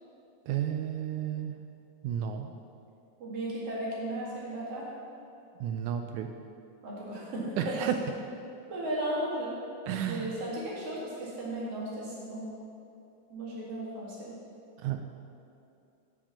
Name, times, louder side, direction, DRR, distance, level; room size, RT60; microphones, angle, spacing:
voice 1, 0.5-1.6 2.0-2.5 5.6-6.3 7.6-7.9 9.9-10.4 14.8-15.0, right 10 dB, 80° right, 5 dB, 1.8 m, -32 dB
voice 2, 3.2-5.0 6.8-7.8 8.7-9.5 10.0-12.5 13.3-14.3, right 1 dB, 50° right, -6 dB, 2.9 m, -35 dB
9.0 x 5.1 x 7.2 m, 2.6 s
omnidirectional pair, 3.8 m